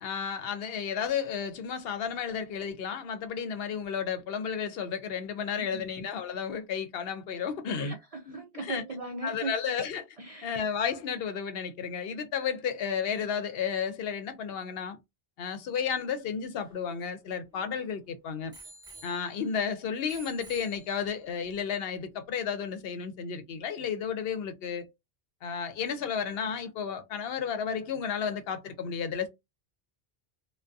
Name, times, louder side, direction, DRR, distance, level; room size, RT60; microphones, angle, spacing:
voice 1, 0.0-8.0 8.3-8.8 9.2-10.1 10.4-15.0 15.4-18.5 19.0-24.9 25.4-29.3, left 7 dB, 70° left, 0.8 m, -32 dB
voice 2, 7.7-9.5 10.2-10.5, right 3 dB, 55° right, 0.4 m, -38 dB
Bicycle bell, 16.2-17.9 18.5-19.7 20.1-21.3 22.1-22.2, right 2 dB, 5° right, 1.1 m, -52 dB
2.5 x 2.2 x 2.3 m
omnidirectional pair, 1.1 m